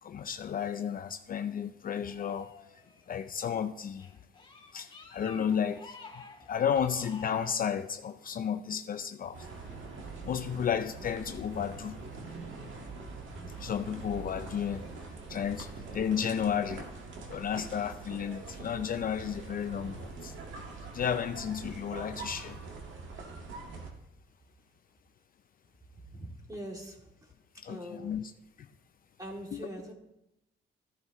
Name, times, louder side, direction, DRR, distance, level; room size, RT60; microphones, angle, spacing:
voice 1, 0.0-4.1 4.7-9.5 10.2-12.0 13.6-14.9 15.3-16.9 17.3-20.4 20.9-22.6 27.5-28.3 28.6-28.7 29.5-29.6, left 8 dB, 45° left, 0.5 m, -33 dB
sound 1, 1.9-3.3 3.8-7.6, left 3 dB, 25° left, 1.8 m, -51 dB
sound 2, 9.3-23.9, right 3 dB, 75° right, 1.8 m, -44 dB
voice 2, 26.1-27.3 27.7-28.2 29.2-29.9, equal, 20° right, 2.5 m, -42 dB
14.0 x 11.0 x 3.1 m
cardioid pair, 90°, 20 cm